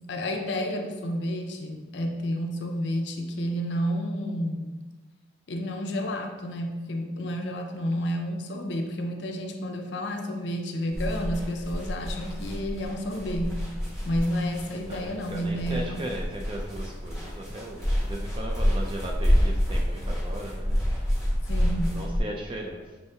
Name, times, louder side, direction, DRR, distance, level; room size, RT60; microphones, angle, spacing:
voice 1, 0.1-4.7 5.5-13.6 14.0-16.0 21.5-22.0, equal, 70° left, 4 dB, 0.5 m, -30 dB
sound 1, 10.9-22.2, equal, 5° right, 0.9 m, -28 dB
voice 2, 14.9-21.5 21.9-23.0, right 1 dB, 25° right, 0 dB, 0.3 m, -37 dB
5.5 x 3.3 x 2.8 m, 1.2 s
head